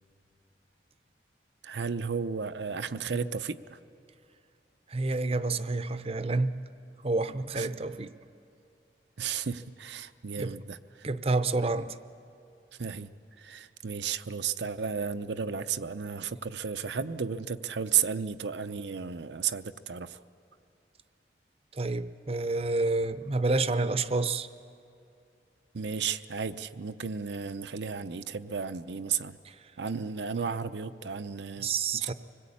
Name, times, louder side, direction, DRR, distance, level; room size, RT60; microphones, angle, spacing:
voice 1, 1.6-3.8 7.5-7.7 9.2-10.8 12.8-13.1 13.4-20.2 25.7-29.4 29.8-31.7 32.0-32.1, right 6 dB, 80° right, 11 dB, 0.7 m, -33 dB
voice 2, 4.9-6.6 7.0-8.1 10.4-10.5 11.0-12.0 21.7-24.5 29.4-29.6 31.6-32.1, right 3 dB, 35° right, 13 dB, 0.7 m, -29 dB
25.0 x 20.0 x 8.6 m, 2.6 s
head